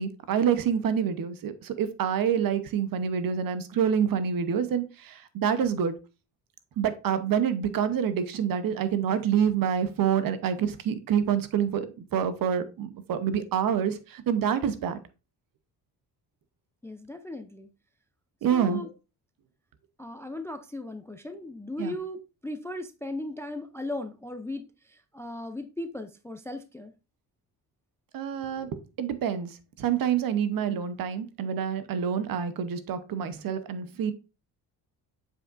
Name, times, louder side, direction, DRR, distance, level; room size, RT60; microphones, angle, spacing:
voice 1, 0.0-5.9 6.8-11.9 12.1-15.0 18.4-18.8 21.8-21.9 28.1-28.7 29.0-34.1, right 8 dB, 55° right, 12 dB, 0.8 m, -27 dB
voice 2, 16.8-17.7 18.5-18.9 20.0-26.9, left 2 dB, 5° left, 9 dB, 0.3 m, -37 dB
7.1 x 5.4 x 2.5 m, 0.30 s
cardioid pair, 135°, 40 cm